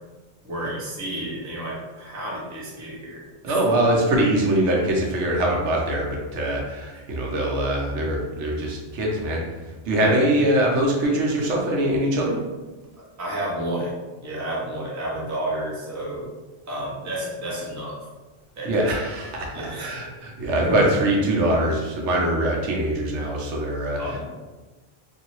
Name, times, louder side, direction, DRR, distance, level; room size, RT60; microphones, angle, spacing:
voice 1, 0.4-3.2 4.1-4.2 6.9-7.0 10.0-10.2 13.2-13.9 14.2-16.3 16.7-18.1 18.5-18.9 19.5-20.1 20.7-20.9 24.0-24.2, right 1 dB, 20° right, -5 dB, 0.5 m, -31 dB
voice 2, 3.4-12.4 18.6-24.2, right 1 dB, 75° right, -1 dB, 0.9 m, -23 dB
2.7 x 2.6 x 2.9 m, 1.2 s
omnidirectional pair, 1.2 m